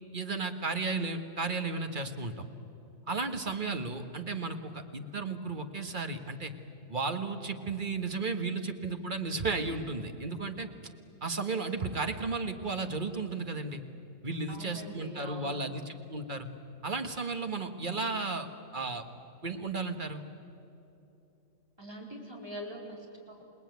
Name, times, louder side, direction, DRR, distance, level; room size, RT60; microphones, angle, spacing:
voice 1, 0.1-2.5 3.1-6.5 6.9-10.7 11.2-13.8 14.2-16.5 16.8-19.0 19.4-20.2, right 3 dB, 40° right, 7 dB, 1.6 m, -34 dB
voice 2, 14.5-15.6 21.8-23.4, equal, 20° right, -2 dB, 4.5 m, -43 dB
28.0 x 19.0 x 9.4 m, 3.0 s
omnidirectional pair, 1.4 m